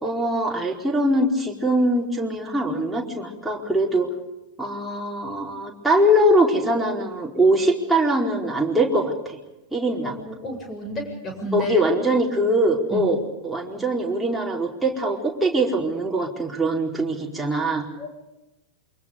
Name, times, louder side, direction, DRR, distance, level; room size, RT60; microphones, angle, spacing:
voice 1, 0.0-4.1 4.6-9.4 9.7-10.2 11.5-13.2 13.4-17.9, right 1 dB, 5° right, -2 dB, 4.6 m, -22 dB
voice 2, 10.0-11.8 12.9-13.1 18.0-18.1, equal, 25° left, 5 dB, 7.4 m, -31 dB
28.5 x 25.0 x 5.2 m, 0.95 s
figure-of-eight pair, 90°, 0 cm